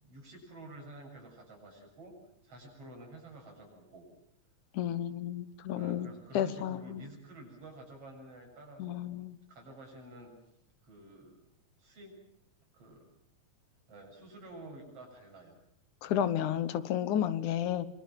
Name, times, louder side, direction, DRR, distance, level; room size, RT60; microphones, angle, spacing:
voice 1, 0.0-2.1 2.4-4.1 5.7-9.0 9.5-10.3 10.8-11.3 11.8-12.2 12.7-13.0 13.9-15.6, right 2 dB, 50° right, 1 dB, 8.5 m, -50 dB
voice 2, 4.7-6.1 6.3-7.0 8.8-9.4 16.0-17.9, left 10 dB, 85° left, 14 dB, 2.7 m, -32 dB
25.5 x 25.5 x 7.6 m, 0.72 s
omnidirectional pair, 3.4 m